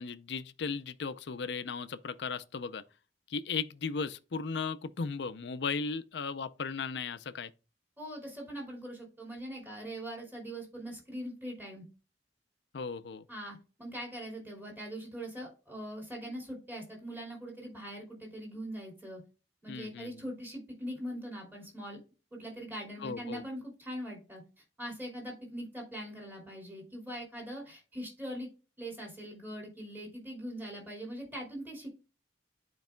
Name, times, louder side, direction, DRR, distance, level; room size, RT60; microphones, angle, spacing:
voice 1, 0.0-2.8 3.3-7.5 12.7-13.2 19.7-20.2 23.0-23.4, left 5 dB, 65° left, 0.5 m, -36 dB
voice 2, 8.0-11.8 13.3-19.2 19.6-22.0 22.3-24.4 24.8-28.5 28.8-31.9, equal, 10° right, 2.8 m, -42 dB
12.0 x 4.6 x 2.2 m
head